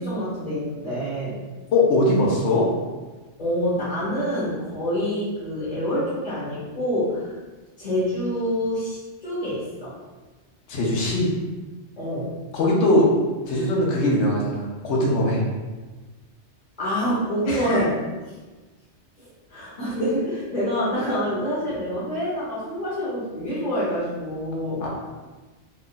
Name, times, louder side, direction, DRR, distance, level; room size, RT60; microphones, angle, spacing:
voice 1, 0.0-1.4 3.4-7.3 7.8-9.9 12.0-12.3 16.8-18.0 18.3-18.4 19.2-24.8, equal, 40° left, -10 dB, 1.1 m, -26 dB
voice 2, 1.7-2.7 10.7-11.3 12.5-13.1 13.5-15.4 17.5-17.8 24.8-24.9, left 1 dB, 80° left, -3 dB, 1.1 m, -21 dB
3.2 x 2.4 x 3.8 m, 1.3 s
omnidirectional pair, 1.2 m